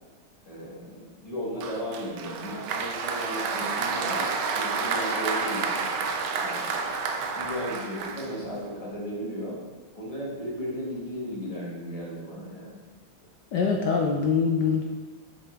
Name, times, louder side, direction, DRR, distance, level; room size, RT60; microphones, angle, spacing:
voice 1, 0.4-5.9 6.4-6.7 7.3-9.6 9.9-12.8, equal, 20° left, -6 dB, 1.4 m, -35 dB
Applause, 1.6-8.7, right 4 dB, 70° right, 1.0 m, -30 dB
voice 2, 13.5-14.8, left 5 dB, 75° left, 1 dB, 1.0 m, -24 dB
7.1 x 5.0 x 3.4 m, 1.4 s
omnidirectional pair, 2.3 m